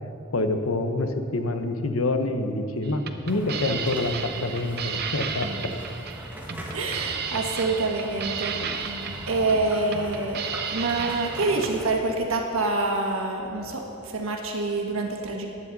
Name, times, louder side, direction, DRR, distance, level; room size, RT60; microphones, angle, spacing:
voice 1, 0.3-5.7 8.5-8.8, left 2 dB, 85° left, 7 dB, 0.9 m, -27 dB
sound 1, 2.8-11.7, right 6 dB, 50° right, 0.6 m, -34 dB
sound 2, 3.3-11.9, equal, 10° right, 1.1 m, -40 dB
voice 2, 6.7-8.8 9.3-15.5, right 3 dB, 85° right, 2 dB, 1.4 m, -26 dB
14.5 x 9.8 x 4.0 m, 2.6 s
head